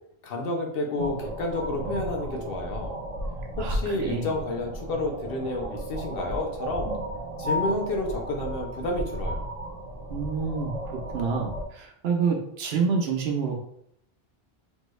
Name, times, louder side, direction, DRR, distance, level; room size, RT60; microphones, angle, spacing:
voice 1, 0.2-2.9 3.6-7.0 7.4-9.4, left 2 dB, 65° left, 2 dB, 0.8 m, -30 dB
sound 1, 1.0-11.6, equal, 45° right, 0.6 m, -34 dB
voice 2, 3.6-4.3 10.1-13.6, right 5 dB, 75° right, 3 dB, 0.9 m, -28 dB
3.3 x 2.2 x 3.0 m, 0.71 s
omnidirectional pair, 1.0 m